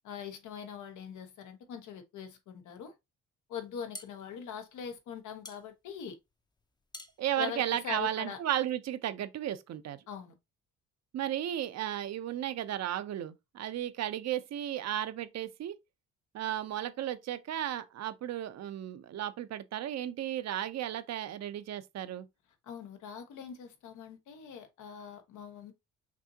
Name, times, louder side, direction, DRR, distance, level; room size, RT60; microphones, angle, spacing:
voice 1, 0.0-2.9 3.5-6.2 7.4-8.4 10.1-10.3 22.6-25.7, left 8 dB, 80° left, 1.1 m, -42 dB
sound 1, 3.6-8.5, left 2 dB, 15° left, 0.6 m, -51 dB
voice 2, 7.2-10.0 11.1-15.8 16.3-22.3, right 11 dB, 60° right, 0.6 m, -34 dB
6.0 x 2.7 x 2.7 m
cardioid pair, 90°, 30 cm